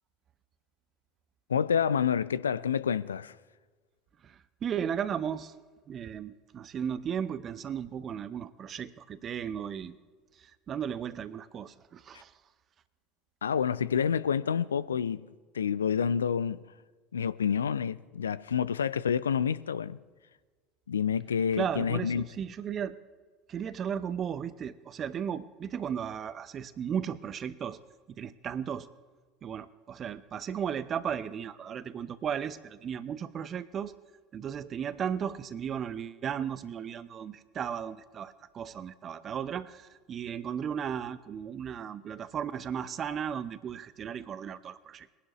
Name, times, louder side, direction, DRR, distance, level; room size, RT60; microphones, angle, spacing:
voice 1, 1.5-3.3 13.4-15.3 15.5-16.6 17.1-20.0 20.9-22.3, left 7 dB, 80° left, 0.3 m, -28 dB
voice 2, 4.2-5.5 5.9-10.0 10.4-12.3 21.5-23.0 23.5-27.8 28.2-28.9 29.4-33.9 34.3-45.2, right 8 dB, 40° right, 0.7 m, -35 dB
22.0 x 11.0 x 3.1 m
figure-of-eight pair, 70°, 0 cm